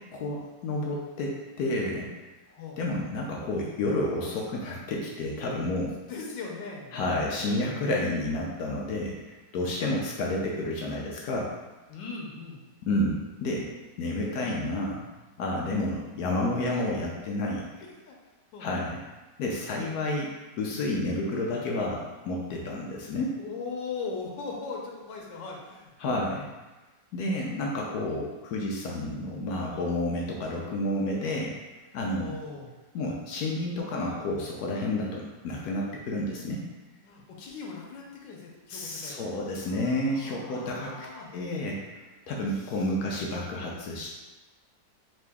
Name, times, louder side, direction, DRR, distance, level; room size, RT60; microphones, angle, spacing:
voice 1, 0.1-2.1 2.8-6.0 6.9-11.5 12.8-13.7 14.0-15.0 15.4-17.6 18.6-19.0 19.4-20.3 20.6-23.3 26.0-26.5 27.1-31.5 31.9-32.4 32.9-36.6 38.7-41.1 41.3-44.3, left 1 dB, 70° left, -2 dB, 1.0 m, -30 dB
voice 2, 6.1-7.0 11.9-12.6 15.8-16.0 16.4-16.5 18.0-18.2 18.5-18.6 19.9-20.0 23.4-25.9 32.2-32.7 37.0-39.1 39.7-41.3 42.5-42.8, left 4 dB, 90° left, -1 dB, 1.4 m, -39 dB
3.8 x 3.1 x 3.4 m, 1.2 s
omnidirectional pair, 1.9 m